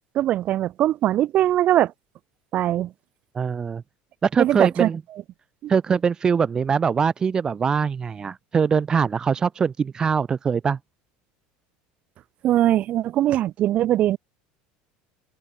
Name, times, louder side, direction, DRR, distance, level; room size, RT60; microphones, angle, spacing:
voice 1, 0.1-1.9 2.5-2.9 4.4-4.9 5.6-5.7 12.4-14.2, right 13 dB, 45° right, 2.1 m, -21 dB
voice 2, 3.3-3.8 4.2-5.0 5.7-10.8, right 6 dB, 20° right, 0.5 m, -22 dB
open air
supercardioid pair, 135°, 3 cm